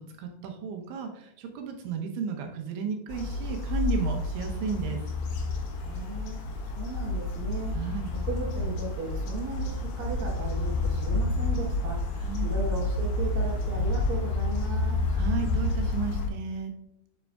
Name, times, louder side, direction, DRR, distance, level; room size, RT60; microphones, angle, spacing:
voice 1, 0.0-5.0 7.7-8.1 12.2-12.5 15.1-16.7, right 6 dB, 80° right, 3 dB, 3.3 m, -33 dB
sound 1, 3.1-16.3, left 2 dB, 70° left, 3.2 m, -29 dB
voice 2, 5.8-6.4 6.7-7.8 8.2-12.0 12.4-15.0, right 3 dB, 65° right, -3 dB, 2.4 m, -36 dB
7.9 x 7.5 x 2.4 m, 0.80 s
omnidirectional pair, 5.4 m